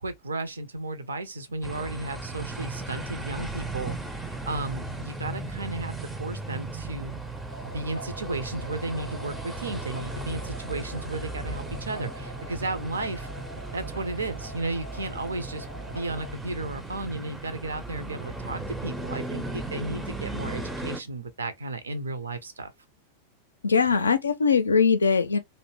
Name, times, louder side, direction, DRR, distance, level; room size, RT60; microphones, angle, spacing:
voice 1, 0.0-7.1 7.6-13.3 13.7-22.7, right 2 dB, 75° right, 0.4 m, -34 dB
sound 1, 1.6-21.0, right 2 dB, 5° right, 0.4 m, -36 dB
sound 2, 7.5-16.3, right 1 dB, 90° right, 0.9 m, -44 dB
voice 2, 23.6-25.4, left 5 dB, 75° left, 0.4 m, -21 dB
2.6 x 2.0 x 3.0 m
figure-of-eight pair, 90°, 0 cm